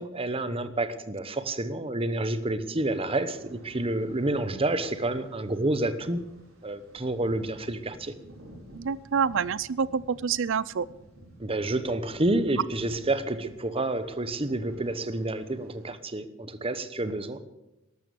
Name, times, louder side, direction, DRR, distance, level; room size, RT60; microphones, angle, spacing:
voice 1, 0.0-6.2 6.6-8.1 11.4-17.4, right 2 dB, 25° right, 12 dB, 1.0 m, -29 dB
sound 1, 3.2-16.0, right 1 dB, 85° right, 5.2 m, -52 dB
voice 2, 8.7-10.9, right 6 dB, 65° right, 20 dB, 0.5 m, -27 dB
13.0 x 12.5 x 7.0 m, 0.94 s
head